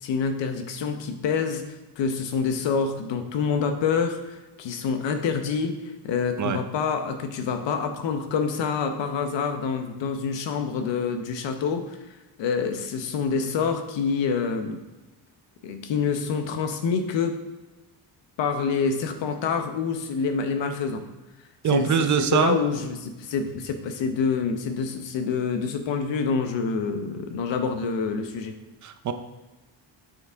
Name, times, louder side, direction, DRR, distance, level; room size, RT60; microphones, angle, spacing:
voice 1, 0.0-12.0 12.4-14.8 15.6-17.4 18.4-21.1 21.6-28.5, left 5 dB, 90° left, 7 dB, 1.1 m, -27 dB
voice 2, 21.6-22.6 28.8-29.1, right 7 dB, 45° right, 9 dB, 0.6 m, -23 dB
8.9 x 7.0 x 3.6 m, 1.1 s
cardioid pair, 180°, 43 cm